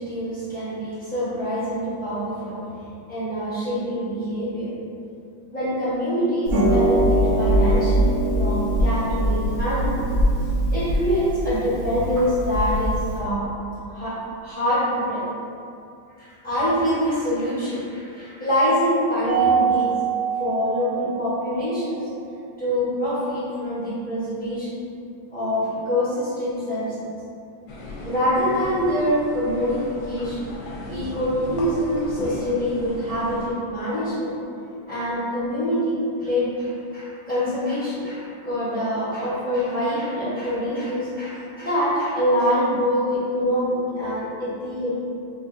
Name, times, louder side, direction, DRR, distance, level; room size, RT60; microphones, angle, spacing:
voice 1, 0.0-2.6 3.1-4.7 5.5-10.0 10.7-13.5 13.9-15.2 16.2-19.9 20.4-22.0 22.6-24.7 25.3-27.1 28.0-30.4 30.9-34.3 34.9-44.9, equal, 5° left, -12 dB, 0.7 m, -25 dB
Harp, 6.5-13.2, equal, 70° right, 0.9 m, -22 dB
Mallet percussion, 19.3-21.7, right 8 dB, 50° left, 0.9 m, -24 dB
sound 1, 27.7-33.5, left 2 dB, 80° left, 1.3 m, -36 dB
4.4 x 2.5 x 2.5 m, 2.6 s
omnidirectional pair, 2.2 m